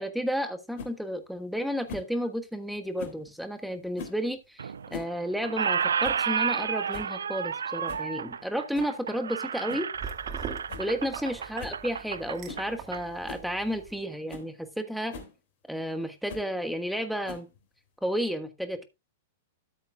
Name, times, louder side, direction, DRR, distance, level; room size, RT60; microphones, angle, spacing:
voice 1, 0.0-9.9 10.8-15.1 15.7-17.5 18.0-18.9, equal, ahead, 8 dB, 1.4 m, -32 dB
sound 1, 0.8-0.9 1.9-2.1 3.0-3.2 3.9-4.2 4.7-5.2 5.4-5.5 6.0-6.3 6.6-6.7 6.9-7.2 7.9-8.1 8.7-9.0 9.7-9.9 10.3-10.4 10.7-10.9 11.2-11.3 11.6-11.8 12.4-12.7 13.3-13.5 14.0-14.1 14.3-14.5 15.1-15.3 16.3-16.5 17.3-17.6, left 5 dB, 55° left, 3.2 m, -42 dB
Squeak, 4.6-5.1 5.4-13.0, right 7 dB, 85° right, 0.4 m, -31 dB
sound 2, 9.9-13.9, right 6 dB, 35° right, 1.9 m, -43 dB
13.5 x 7.6 x 2.3 m, 0.24 s
hypercardioid pair, 115°, 0 cm